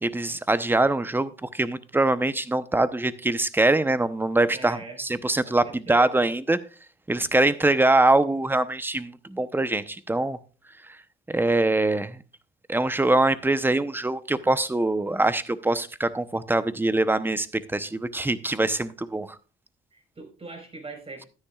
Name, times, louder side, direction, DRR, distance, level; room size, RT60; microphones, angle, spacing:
voice 1, 0.0-6.6 7.1-10.4 11.3-12.2 12.7-17.5 17.7-19.3, right 2 dB, 10° right, 0.8 m, -23 dB
voice 2, 4.5-5.0 5.4-6.2 19.9-21.3, right 3 dB, 30° right, 4.7 m, -41 dB
13.0 x 9.9 x 2.4 m
cardioid pair, 90°, 20 cm